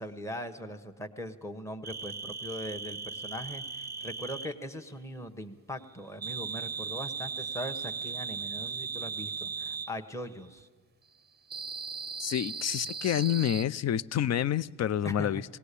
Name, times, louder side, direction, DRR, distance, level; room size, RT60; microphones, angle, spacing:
voice 1, 0.0-10.7 15.0-15.4, equal, 5° left, 1.2 m, -40 dB
sound 1, 1.8-4.6 6.2-9.9 11.5-13.6, right 5 dB, 25° right, 0.7 m, -37 dB
voice 2, 12.2-15.4, left 10 dB, 40° left, 0.5 m, -28 dB
18.0 x 18.0 x 8.4 m
supercardioid pair, 70°, 43 cm